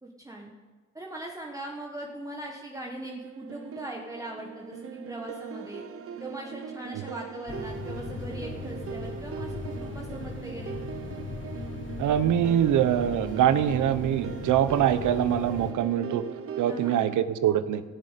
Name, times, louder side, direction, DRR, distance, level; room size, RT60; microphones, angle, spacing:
voice 1, 0.0-0.5 0.9-5.8 6.2-10.8 16.7-17.1, right 1 dB, 10° right, -1 dB, 1.5 m, -40 dB
sound 1, 3.0-17.2, right 7 dB, 50° right, 1.1 m, -40 dB
sound 2, 7.5-15.7, left 4 dB, 40° left, 1.3 m, -38 dB
voice 2, 12.0-16.2 16.6-17.8, right 10 dB, 80° right, 12 dB, 1.0 m, -24 dB
17.0 x 6.8 x 8.4 m, 1.4 s
cardioid pair, 90°, 30 cm